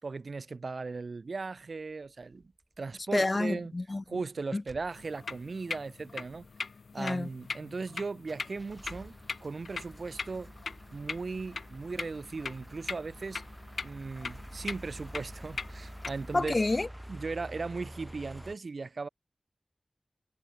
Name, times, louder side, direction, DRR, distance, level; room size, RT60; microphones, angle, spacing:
voice 1, 0.0-2.5 2.8-3.7 4.1-6.4 6.9-9.1 9.4-10.5 10.9-13.4 13.8-16.6 17.1-19.1, right 4 dB, 75° right, 2.9 m, -37 dB
sound 1, 2.2-2.5 2.9-3.1 3.4-3.5 3.8-4.2 4.7-5.4 5.8-5.9 6.1-6.6 7.0-7.9 8.2-18.6, equal, 10° right, 6.2 m, -48 dB
voice 2, 3.1-4.0 4.5-4.6 7.0-7.3 16.3-16.9, left 2 dB, 45° left, 0.4 m, -28 dB
sound 2, 4.9-16.4, left 4 dB, 90° left, 1.5 m, -42 dB
cardioid pair, 45°, 0 cm